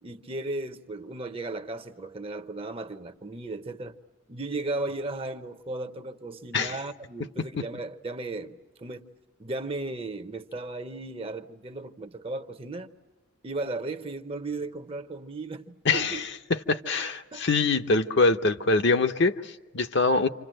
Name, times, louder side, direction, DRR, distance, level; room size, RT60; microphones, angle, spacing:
voice 1, 0.0-4.0 4.3-9.1 9.4-12.9 13.4-16.2 17.3-17.5, right 2 dB, 25° right, 0.8 m, -35 dB
voice 2, 15.9-20.3, left 3 dB, 55° left, 0.9 m, -24 dB
28.5 x 26.5 x 7.8 m
head